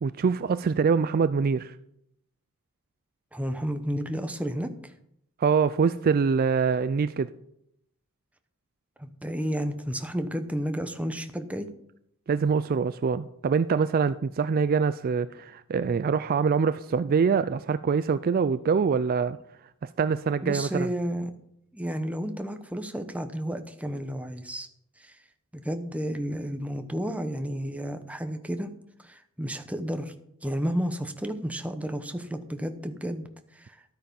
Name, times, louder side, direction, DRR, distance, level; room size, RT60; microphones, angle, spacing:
voice 1, 0.0-1.7 5.4-7.3 12.3-19.4 19.8-20.9, right 5 dB, 40° right, 0.3 m, -24 dB
voice 2, 3.3-4.7 9.0-11.7 20.4-21.3 21.7-24.7 25.0-25.2 25.5-28.7 29.0-30.1 30.4-33.8, equal, 5° right, 0.9 m, -32 dB
12.5 x 8.8 x 5.3 m
head